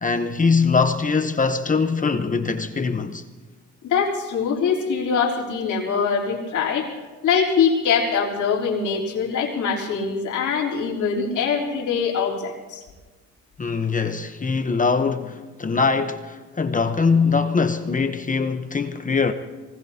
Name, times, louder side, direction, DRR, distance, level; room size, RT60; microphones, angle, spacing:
voice 1, 0.0-3.2 13.6-19.3, left 4 dB, 25° left, 0.9 m, -22 dB
voice 2, 3.8-6.9 7.2-12.8, left 6 dB, 80° left, 3.7 m, -23 dB
24.0 x 19.5 x 2.9 m
cardioid pair, 90°, 30 cm